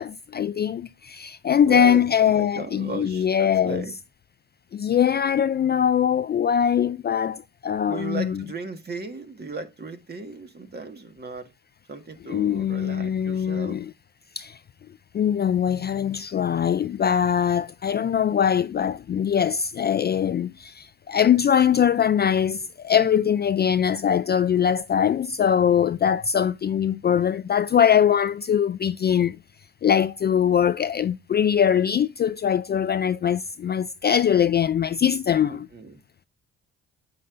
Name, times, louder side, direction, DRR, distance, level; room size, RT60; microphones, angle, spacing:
voice 1, 0.0-3.8 4.7-8.4 12.3-13.9 14.4-14.6 15.1-29.4 29.8-35.7, left 8 dB, 35° left, 0.4 m, -22 dB
voice 2, 1.7-3.9 7.9-11.5 11.9-13.8 35.5-36.0, right 4 dB, 35° right, 1.7 m, -36 dB
8.0 x 7.6 x 2.5 m
cardioid pair, 90°, 30 cm